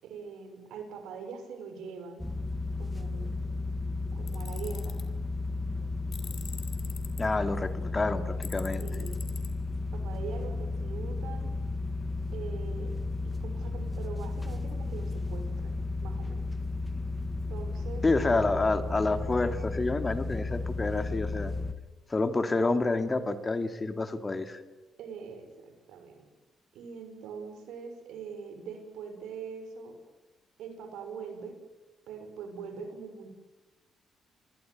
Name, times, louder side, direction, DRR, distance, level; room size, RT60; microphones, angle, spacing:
voice 1, 0.0-2.3 2.8-3.4 4.1-4.9 8.8-9.2 9.9-11.5 12.3-13.0 13.2-15.7 16.0-16.4 17.5-18.6 25.0-26.2 26.7-30.0 30.6-31.6 32.1-33.3, right 5 dB, 85° right, 7 dB, 6.0 m, -42 dB
sound 1, 2.2-21.7, left 3 dB, 10° left, 2.0 m, -34 dB
Tools, 4.3-5.0 6.1-7.2 8.4-9.5, left 7 dB, 55° left, 3.8 m, -45 dB
voice 2, 7.2-8.8 18.0-21.5 22.1-24.6, left 3 dB, 30° left, 9 dB, 2.7 m, -28 dB
28.0 x 20.5 x 9.6 m, 1.1 s
cardioid pair, 75°, 0 cm